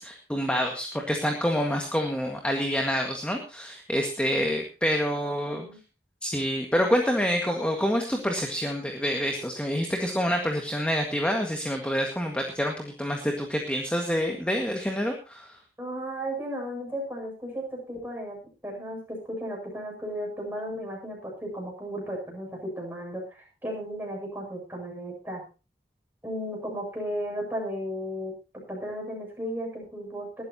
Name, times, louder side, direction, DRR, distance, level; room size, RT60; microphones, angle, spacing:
voice 1, 0.0-5.7 6.2-15.6, equal, 5° left, 2 dB, 1.8 m, -27 dB
voice 2, 5.1-5.8 15.8-18.4 18.6-25.4 26.2-28.3 28.7-30.4, equal, 10° right, -1 dB, 7.7 m, -35 dB
20.5 x 12.5 x 2.9 m, 0.33 s
head